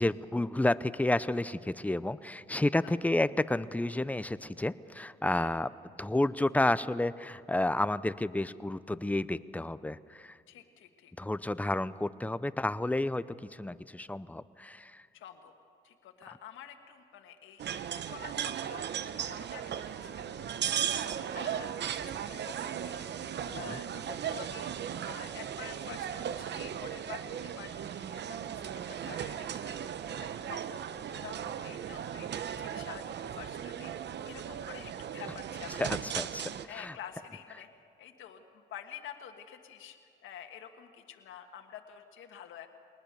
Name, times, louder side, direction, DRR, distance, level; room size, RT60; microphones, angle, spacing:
voice 1, 0.0-5.7 6.0-10.4 11.2-15.1 23.5-23.8 35.8-37.0, left 1 dB, 5° left, 15 dB, 0.6 m, -31 dB
voice 2, 5.3-5.6 10.5-11.1 15.1-15.5 15.8-20.3 20.6-24.7 25.0-36.0 36.7-40.0 40.2-42.7, left 9 dB, 80° left, 4 dB, 1.6 m, -49 dB
sound 1, 17.6-36.7, right 9 dB, 60° right, 0.9 m, -37 dB
22.5 x 19.5 x 6.8 m, 2.5 s
cardioid pair, 90°, 20 cm